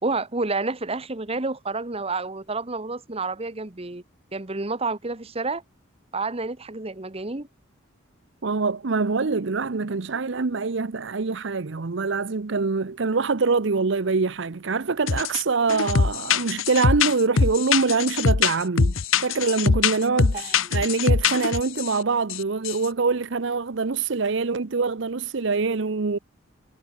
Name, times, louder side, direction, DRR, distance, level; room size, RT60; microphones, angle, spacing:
voice 1, 0.0-4.0 4.3-5.6 6.1-7.5 20.3-20.8, right 3 dB, 30° right, 1.3 m, -29 dB
voice 2, 8.4-18.9 19.2-26.2, right 4 dB, 65° right, 0.7 m, -24 dB
sound 1, 15.1-15.4 15.7-21.9 22.3-22.4 22.7-22.9, left 5 dB, 90° left, 0.9 m, -22 dB
head